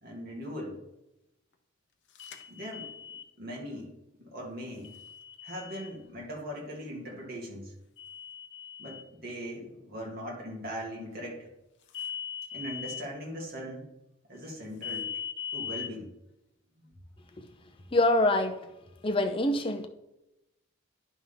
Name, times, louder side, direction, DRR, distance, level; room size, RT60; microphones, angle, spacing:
voice 1, 0.0-0.8 2.5-2.9 3.4-3.9 4.2-4.9 5.4-7.7 8.8-11.5 12.5-13.9 14.3-15.1 15.5-16.1, equal, 50° right, 2.5 m, -40 dB
sound 1, 2.2-3.3 4.8-5.9 8.0-9.0 11.9-13.0 14.8-15.9, left 8 dB, 60° left, 0.8 m, -39 dB
voice 2, 17.9-18.5 19.0-19.9, left 1 dB, 25° left, 0.7 m, -25 dB
9.8 x 3.6 x 5.7 m
head